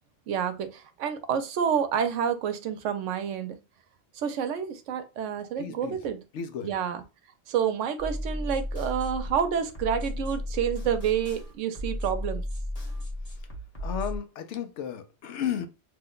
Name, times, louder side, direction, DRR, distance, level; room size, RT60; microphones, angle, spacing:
voice 1, 0.3-3.6 4.1-6.2 6.6-7.0 7.5-12.4, right 8 dB, 85° right, 0.9 m, -29 dB
voice 2, 5.6-6.0 6.3-6.8 13.8-15.7, left 8 dB, 75° left, 0.9 m, -33 dB
sound 1, 8.0-14.2, left 1 dB, 35° left, 0.9 m, -34 dB
2.8 x 2.1 x 3.6 m
omnidirectional pair, 1.2 m